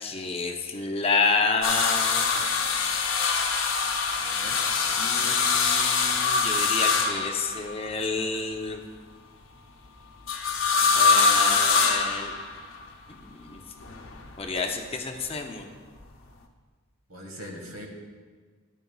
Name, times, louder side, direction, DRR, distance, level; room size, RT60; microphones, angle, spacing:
voice 1, 0.0-2.3 5.0-8.8 10.9-12.3 13.1-13.6 14.4-15.7, left 4 dB, 25° left, 3 dB, 0.6 m, -29 dB
sound 1, 1.6-7.9 10.3-12.8 13.8-14.6 16.0-16.1, left 5 dB, 60° left, 0.8 m, -24 dB
voice 2, 2.3-2.8 4.1-5.5 17.1-17.9, equal, 80° right, 2 dB, 1.6 m, -44 dB
13.0 x 10.0 x 2.3 m, 1.5 s
head